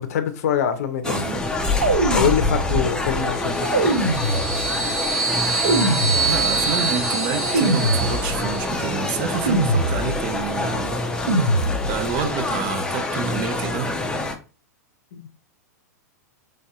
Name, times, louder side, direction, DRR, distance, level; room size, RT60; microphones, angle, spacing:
voice 1, 0.0-1.2 2.1-3.7 15.1-15.3, left 9 dB, 60° left, 0.5 m, -24 dB
sound 1, 1.0-14.4, left 2 dB, 10° left, 0.4 m, -26 dB
voice 2, 1.0-1.4 6.2-10.9 11.9-13.9, right 7 dB, 45° right, 0.5 m, -28 dB
sound 2, 1.8-3.0 3.7-4.9 5.6-6.8 7.5-8.6 9.5-10.4 11.3-12.2, right 2 dB, 80° right, 0.8 m, -23 dB
sound 3, 3.4-8.9, right 4 dB, 5° right, 1.1 m, -26 dB
3.3 x 2.6 x 2.2 m
hypercardioid pair, 105°, 9 cm